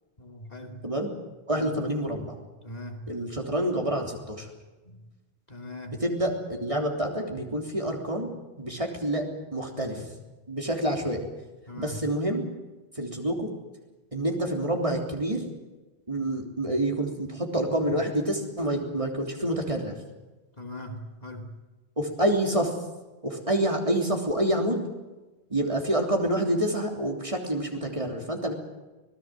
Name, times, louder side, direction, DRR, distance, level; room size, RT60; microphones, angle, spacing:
voice 1, 0.2-0.8 1.5-1.7 2.6-3.1 4.8-5.0 5.5-6.0 11.7-12.0 20.6-21.5, left 1 dB, 40° left, 4 dB, 2.6 m, -40 dB
voice 2, 1.5-2.4 3.1-4.5 5.9-8.3 8.6-9.3 9.5-10.1 10.5-11.2 11.8-12.4 13.0-13.5 14.1-15.4 16.1-20.0 22.0-22.7 23.2-24.8 25.5-28.5, right 1 dB, 30° right, 1 dB, 3.4 m, -27 dB
26.0 x 18.5 x 7.6 m, 1.2 s
omnidirectional pair, 1.1 m